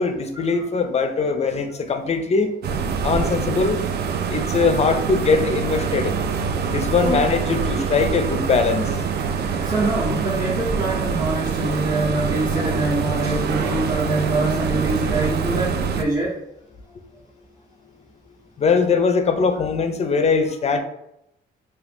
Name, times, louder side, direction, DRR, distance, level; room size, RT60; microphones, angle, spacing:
voice 1, 0.0-2.6 3.0-3.8 4.3-6.1 6.7-8.9 18.6-20.8, left 4 dB, 35° left, 8 dB, 0.4 m, -21 dB
sound 1, 2.6-16.0, right 6 dB, 55° right, 0.4 m, -25 dB
voice 2, 7.0-7.4 9.4-16.4, right 2 dB, 20° right, -5 dB, 0.7 m, -24 dB
2.7 x 2.4 x 3.4 m, 0.81 s
cardioid pair, 90°, 20 cm